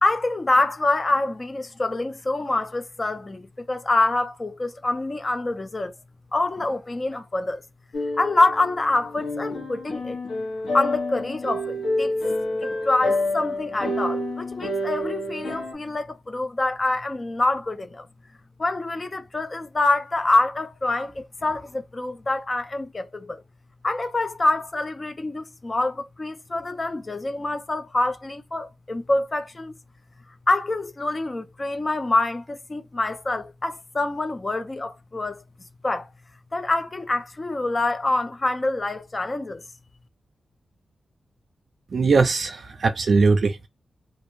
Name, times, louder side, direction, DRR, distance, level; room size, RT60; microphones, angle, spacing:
voice 1, 0.0-5.9 6.3-7.6 8.2-10.2 10.7-12.1 12.6-18.1 18.6-23.4 23.8-29.7 30.5-35.4 35.8-36.1 36.5-39.6, left 2 dB, 30° left, 0.4 m, -26 dB
sound 1, 7.9-15.7, left 1 dB, 80° left, 0.9 m, -28 dB
voice 2, 41.9-43.7, right 4 dB, 55° right, 0.4 m, -20 dB
2.5 x 2.0 x 3.0 m
wide cardioid pair, 100°, 0 cm